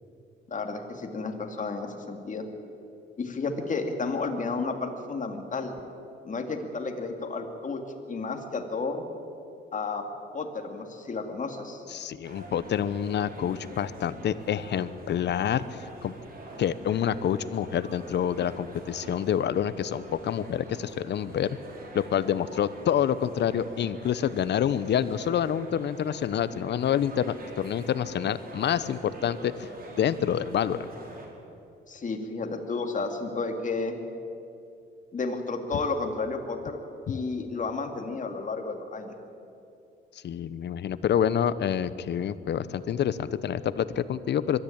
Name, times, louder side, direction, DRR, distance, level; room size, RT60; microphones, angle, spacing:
voice 1, 0.5-2.5 3.2-5.7 6.2-7.8 8.1-9.0 9.7-10.0 10.3-11.8 31.9-34.0 35.1-36.8 37.1-39.1, left 4 dB, 40° left, 4 dB, 2.7 m, -32 dB
voice 2, 11.9-16.1 16.6-21.6 21.9-29.7 30.0-30.9 40.2-44.6, left 9 dB, 60° left, 16 dB, 0.9 m, -27 dB
sound 1, 12.2-31.3, right 2 dB, 45° right, 4.4 m, -46 dB
22.0 x 13.5 x 8.9 m, 2.7 s
cardioid pair, 90°, 20 cm